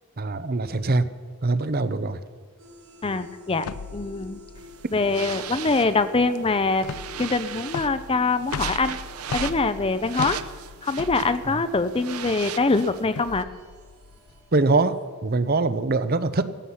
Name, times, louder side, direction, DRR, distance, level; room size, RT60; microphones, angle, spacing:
voice 1, 0.2-1.1 1.4-2.2 11.5-11.6 14.5-16.6, right 3 dB, 45° right, 13 dB, 0.7 m, -23 dB
sound 1, 2.6-15.1, left 2 dB, 75° right, 3.9 m, -50 dB
voice 2, 3.0-3.7 3.9-4.4 4.9-6.9 7.2-9.0 9.3-10.4 10.8-13.5, left 3 dB, 25° left, 12 dB, 0.6 m, -23 dB
sound 2, 3.6-14.8, left 5 dB, 85° left, 0.5 m, -38 dB
sound 3, 4.6-13.4, right 9 dB, 90° right, 0.8 m, -38 dB
15.5 x 15.5 x 5.7 m, 1.5 s
head